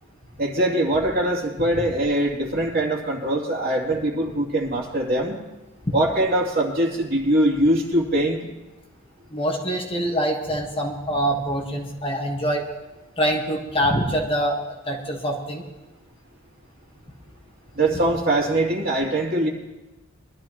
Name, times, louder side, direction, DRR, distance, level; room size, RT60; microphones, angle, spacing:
voice 1, 0.4-5.4 5.9-8.4 17.7-19.5, right 1 dB, 45° right, -3 dB, 2.6 m, -22 dB
voice 2, 9.3-12.6 13.2-14.6 14.9-15.6, equal, 25° left, 0 dB, 1.5 m, -24 dB
22.5 x 12.5 x 3.0 m, 1.1 s
head